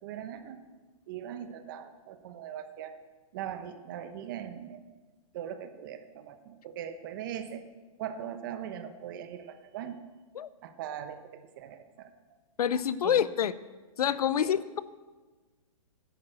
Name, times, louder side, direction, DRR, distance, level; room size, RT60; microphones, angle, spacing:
voice 1, 0.0-0.7 1.1-3.0 3.3-4.9 5.3-7.6 8.0-10.0 10.6-12.1 13.0-13.3 14.4-14.6, right 9 dB, 35° right, 9 dB, 1.0 m, -40 dB
voice 2, 12.6-13.5 14.0-14.8, left 9 dB, 85° left, 17 dB, 0.7 m, -27 dB
11.0 x 8.9 x 7.6 m, 1.3 s
hypercardioid pair, 165°, 19 cm